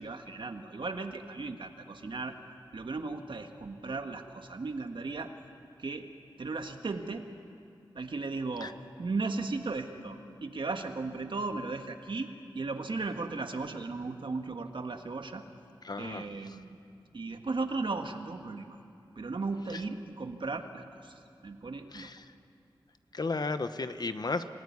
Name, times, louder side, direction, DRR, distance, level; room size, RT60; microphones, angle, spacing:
voice 1, 0.0-2.3 2.7-5.3 5.8-6.1 6.4-7.3 7.9-15.4 16.0-16.7 17.1-18.8 19.1-22.1, right 3 dB, 70° right, 6 dB, 1.6 m, -36 dB
voice 2, 15.8-16.6 19.7-19.8 21.9-22.3 23.1-24.5, left 3 dB, 50° left, 10 dB, 1.0 m, -34 dB
27.0 x 16.5 x 9.6 m, 2.5 s
wide cardioid pair, 95°, 9 cm